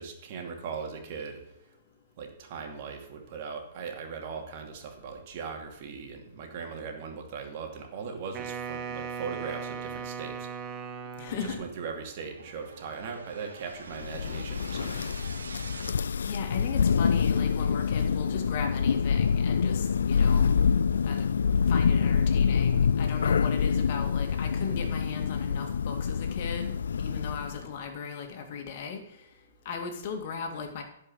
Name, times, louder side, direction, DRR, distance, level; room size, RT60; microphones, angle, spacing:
voice 1, 0.0-1.4 2.2-10.5 11.3-15.2, right 5 dB, 50° right, 3 dB, 2.5 m, -39 dB
Wind instrument woodwind instrument, 8.3-11.8, right 6 dB, 25° right, 1.4 m, -38 dB
sound 1, 10.4-15.9, right 4 dB, 80° right, 1.2 m, -48 dB
voice 2, 11.2-11.6 16.3-20.5 21.1-21.2 21.7-26.7 27.0-29.0 29.7-30.8, left 6 dB, 50° left, 3 dB, 2.3 m, -37 dB
Thunder, 14.0-27.6, left 6 dB, 75° left, 0.3 m, -26 dB
11.5 x 5.4 x 7.8 m, 0.77 s
hypercardioid pair, 120°, 0 cm